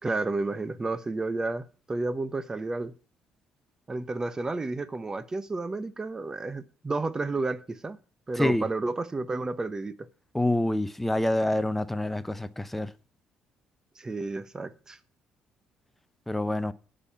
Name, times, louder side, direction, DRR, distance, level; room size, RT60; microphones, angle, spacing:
voice 1, 0.0-2.9 3.9-8.0 8.3-10.1 14.0-15.0, right 3 dB, 20° right, 0.9 m, -31 dB
voice 2, 10.3-12.9 16.3-16.7, left 1 dB, 5° left, 0.7 m, -27 dB
9.8 x 5.5 x 7.2 m
cardioid pair, 95°, 3 cm